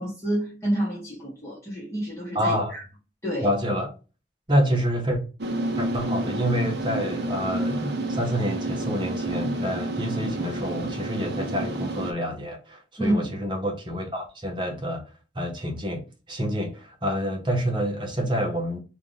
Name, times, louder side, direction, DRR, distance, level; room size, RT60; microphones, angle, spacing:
voice 1, 0.0-2.8 3.2-3.5 13.0-13.3, right 1 dB, 15° left, 1.5 m, -28 dB
voice 2, 2.3-2.8 3.4-3.9 4.5-5.2 5.8-15.1 15.3-18.8, equal, 25° right, 0.9 m, -27 dB
sound 1, 5.4-12.1, right 2 dB, 65° right, 0.7 m, -29 dB
3.2 x 2.6 x 3.7 m
head